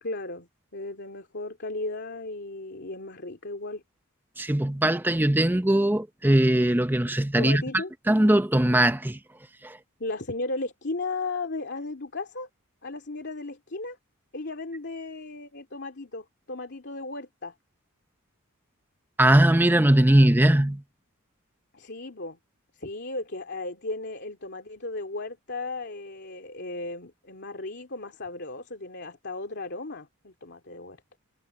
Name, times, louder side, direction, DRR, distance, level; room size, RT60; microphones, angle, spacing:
voice 1, 0.0-3.8 7.4-7.9 10.0-12.5 12.8-14.0 14.3-17.5 21.7-22.4 22.7-31.0, left 2 dB, 55° left, 2.8 m, -35 dB
voice 2, 4.4-7.6 8.1-9.2 9.6-9.8 19.2-20.8, right 1 dB, 10° right, 0.8 m, -20 dB
head